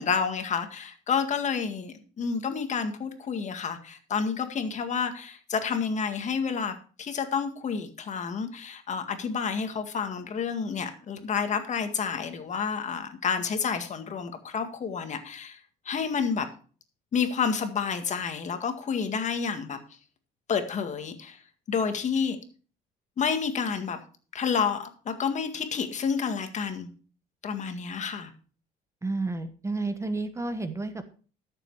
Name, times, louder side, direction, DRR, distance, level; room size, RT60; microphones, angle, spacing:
voice 1, 0.0-15.6 15.9-16.5 17.1-19.8 20.5-21.4 21.7-22.4 23.2-24.0 24.3-26.9 27.4-28.3, left 6 dB, 45° left, 7 dB, 1.9 m, -29 dB
voice 2, 29.0-31.1, right 3 dB, 15° right, 10 dB, 1.1 m, -31 dB
13.0 x 7.1 x 4.8 m, 0.39 s
cardioid pair, 110°, 17 cm